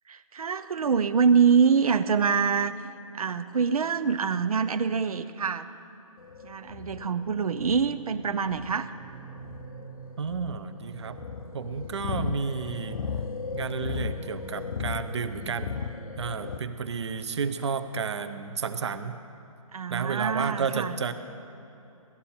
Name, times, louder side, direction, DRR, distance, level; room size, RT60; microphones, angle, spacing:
voice 1, 0.1-2.8 3.1-5.7 6.4-8.9 19.7-20.9, right 6 dB, 90° right, 11 dB, 0.6 m, -25 dB
sound 1, 6.2-16.6, left 6 dB, 75° left, 0.6 m, -36 dB
sound 2, 7.5-17.7, right 6 dB, 20° right, 0.7 m, -48 dB
voice 2, 10.2-11.2 11.5-13.0 13.5-15.7 16.2-19.2 19.9-21.1, right 5 dB, 50° right, 9 dB, 0.7 m, -31 dB
17.0 x 13.0 x 4.3 m, 2.9 s
hypercardioid pair, 175°, 18 cm